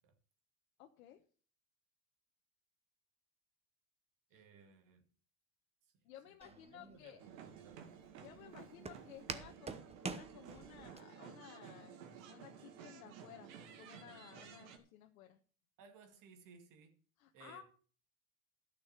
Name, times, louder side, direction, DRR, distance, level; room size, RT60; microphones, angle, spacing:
voice 1, 0.8-1.2 4.3-4.4 6.0-7.2 8.2-12.0 12.3-15.4 17.2-17.6, left 11 dB, 85° left, 1.2 m, -56 dB
voice 2, 4.3-5.0 5.8-7.8 15.8-17.0 17.3-17.6, right 5 dB, 50° right, 2.3 m, -61 dB
Walk footsteps, 6.4-11.0, right 4 dB, 15° right, 0.9 m, -47 dB
sound 1, 7.2-14.8, right 8 dB, 75° right, 2.2 m, -54 dB
11.5 x 6.6 x 7.3 m
supercardioid pair, 115°, 41 cm